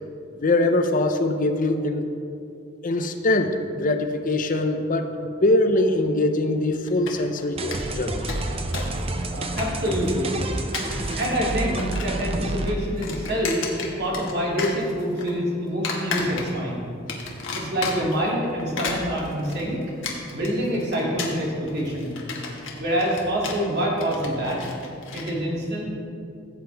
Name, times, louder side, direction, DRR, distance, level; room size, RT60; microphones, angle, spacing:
voice 1, 0.4-2.1 2.8-8.3, left 2 dB, 40° left, 7 dB, 0.5 m, -23 dB
sound 1, 6.9-7.4 7.7-7.8 8.1-9.0 9.2-10.1 10.6-11.3 11.6-12.2 12.5-14.3 14.6-15.3 15.8-16.7 17.1-18.2 18.6-25.3, left 4 dB, 65° left, 1.5 m, -33 dB
sound 2, 7.6-12.8, right 2 dB, 30° right, 0.6 m, -29 dB
voice 2, 9.3-10.3 10.9-16.8 17.5-19.8 20.3-22.1 22.8-24.6 25.1-25.8, equal, 50° right, -4 dB, 2.6 m, -26 dB
16.0 x 7.9 x 3.4 m, 2.5 s
head